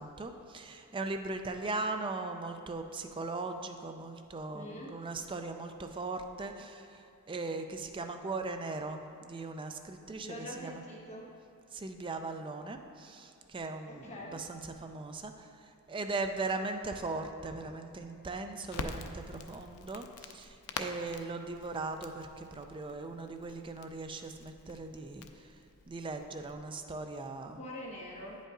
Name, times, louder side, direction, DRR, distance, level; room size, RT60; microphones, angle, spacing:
voice 1, 0.0-7.0 7.3-10.8 11.7-25.3 25.9-27.6, right 3 dB, 25° right, 6 dB, 0.4 m, -39 dB
voice 2, 4.5-5.0 10.2-11.2 13.9-14.4 27.6-28.4, left 1 dB, 30° left, -4 dB, 1.3 m, -44 dB
Crackle, 18.7-26.6, left 4 dB, 80° left, 0.5 m, -46 dB
8.7 x 5.3 x 3.8 m, 2.7 s
head